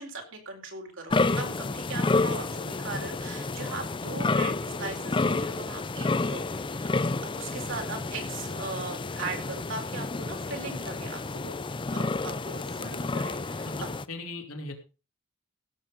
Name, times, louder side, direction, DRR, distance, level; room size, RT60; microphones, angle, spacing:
voice 1, 0.0-13.7, right 3 dB, 60° right, 2 dB, 4.3 m, -39 dB
sound 1, 1.1-14.0, left 3 dB, 20° left, 0.5 m, -30 dB
voice 2, 13.6-14.7, left 2 dB, 70° left, 2 dB, 3.6 m, -39 dB
16.5 x 7.7 x 5.3 m, 0.33 s
head